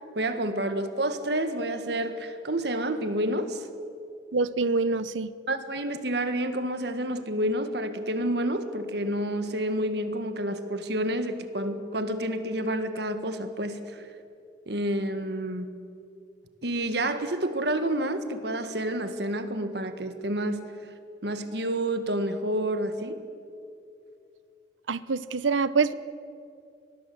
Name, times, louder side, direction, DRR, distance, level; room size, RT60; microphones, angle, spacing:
voice 1, 0.2-3.7 5.5-14.0 14.7-15.7 16.6-20.6 21.2-23.2, right 1 dB, 60° right, 9 dB, 1.7 m, -29 dB
voice 2, 4.3-5.3 24.9-25.9, right 4 dB, 90° right, 16 dB, 0.8 m, -25 dB
23.5 x 19.5 x 7.9 m, 2.5 s
head